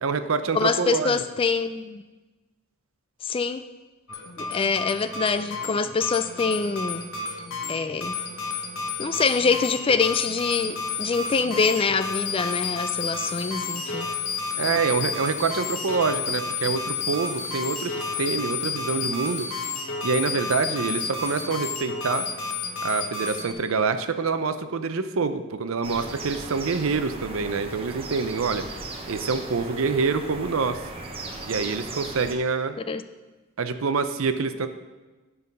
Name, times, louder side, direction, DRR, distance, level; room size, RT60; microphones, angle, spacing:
voice 1, 0.0-1.2 14.6-17.9 18.2-19.5 20.0-22.3 22.8-28.7 29.1-30.8 31.5-32.8 33.6-34.7, right 4 dB, 70° right, 10 dB, 0.6 m, -26 dB
voice 2, 0.5-2.0 3.2-3.6 4.4-7.0 7.7-8.2 9.0-14.1 32.9-33.0, left 5 dB, 25° left, 11 dB, 0.3 m, -25 dB
sound 1, 4.1-23.5, left 4 dB, 65° left, 1.2 m, -31 dB
sound 2, 25.8-32.3, right 3 dB, 25° right, 0.8 m, -37 dB
10.5 x 5.6 x 5.4 m, 1.2 s
head